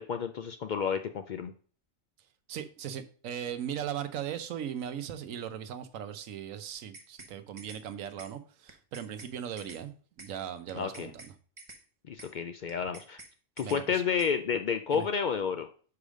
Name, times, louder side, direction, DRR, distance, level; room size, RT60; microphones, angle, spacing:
voice 1, 0.0-1.5 10.7-11.1 12.1-13.2 13.6-15.7, left 6 dB, 80° left, 8 dB, 0.4 m, -31 dB
voice 2, 2.5-9.9 10.2-11.3 13.6-14.0 14.9-15.1, right 9 dB, 80° right, 10 dB, 1.1 m, -38 dB
sound 1, 6.7-7.3 7.6-7.8 8.2-8.3 8.7-9.3 9.6-9.8 10.2-10.3 10.7-11.3 11.6-11.8 12.2-12.3 12.7-13.3 13.6-13.8 14.2-14.3, right 3 dB, 25° right, 0.8 m, -49 dB
4.9 x 4.8 x 6.3 m, 0.43 s
omnidirectional pair, 1.4 m